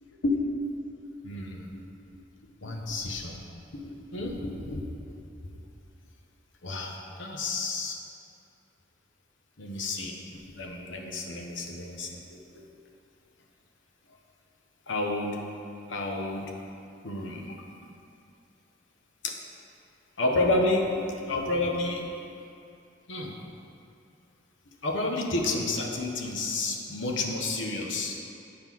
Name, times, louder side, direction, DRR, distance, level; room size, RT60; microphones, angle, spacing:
voice 1, 0.2-0.7 1.0-1.9 2.1-2.2 2.6-3.4 3.7-4.8 5.1-5.2 6.6-8.0 9.6-12.6 14.9-15.4 15.9-16.5 17.0-17.9 19.2-19.4 20.2-22.4 23.1-23.3 24.8-28.1, left 2 dB, 85° left, 1 dB, 0.9 m, -31 dB
8.6 x 3.8 x 6.1 m, 2.6 s
head